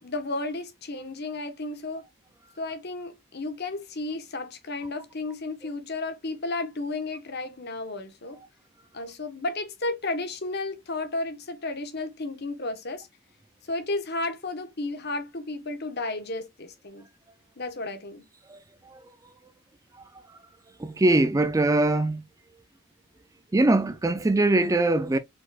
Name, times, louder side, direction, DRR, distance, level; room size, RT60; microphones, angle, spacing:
voice 1, 0.0-2.0 2.6-8.4 8.9-13.1 13.7-17.1 17.6-18.2, left 2 dB, 45° left, 1.1 m, -33 dB
voice 2, 20.8-22.2 23.5-25.2, right 2 dB, 15° right, 0.3 m, -22 dB
4.7 x 4.0 x 2.3 m
head